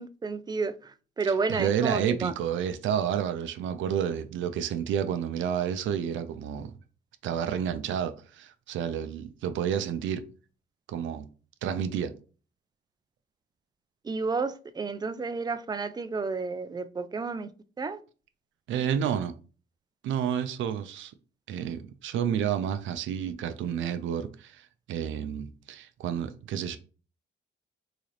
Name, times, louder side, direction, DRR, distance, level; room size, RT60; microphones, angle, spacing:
voice 1, 0.0-2.3 14.0-17.5 17.8-18.0, right 4 dB, 20° right, 0.4 m, -31 dB
voice 2, 1.5-6.7 7.2-10.2 10.9-11.3 11.6-12.1 18.7-19.3 20.0-21.1 21.5-26.8, right 8 dB, 75° right, 0.5 m, -30 dB
3.9 x 2.4 x 3.2 m
cardioid pair, 90°, 20 cm